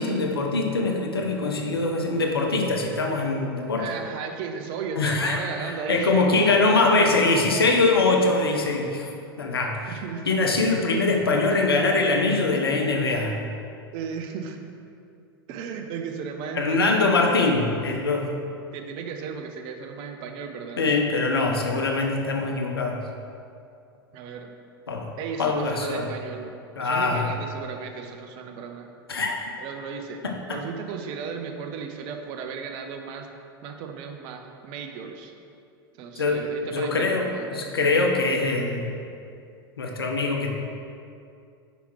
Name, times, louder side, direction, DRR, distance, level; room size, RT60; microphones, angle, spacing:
voice 1, 0.0-3.9 5.0-9.1 9.4-13.4 16.5-18.3 20.8-23.0 24.9-25.1 25.4-26.1 26.8-27.3 29.1-29.4 30.2-30.6 36.2-39.0 39.8-40.5, left 3 dB, 75° left, 1 dB, 0.8 m, -23 dB
voice 2, 3.8-7.3 9.9-10.4 11.2-11.6 12.5-12.9 13.9-14.7 15.5-17.5 18.7-21.0 24.1-24.5 25.2-26.5 26.8-28.9 29.6-30.2 30.5-33.3 33.6-35.3 36.0-37.5, right 6 dB, 40° right, 4 dB, 0.6 m, -35 dB
5.1 x 4.9 x 4.9 m, 2.4 s
figure-of-eight pair, 90°, 13 cm